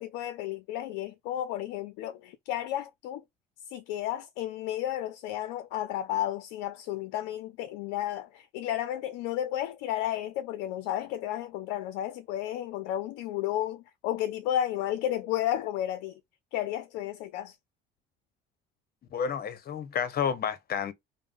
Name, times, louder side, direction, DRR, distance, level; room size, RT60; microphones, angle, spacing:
voice 1, 0.0-3.2 3.7-16.1 16.5-17.6, left 12 dB, 75° left, 0.4 m, -32 dB
voice 2, 19.1-20.9, left 7 dB, 50° left, 0.8 m, -30 dB
3.5 x 2.0 x 2.4 m
hypercardioid pair, 65°, 21 cm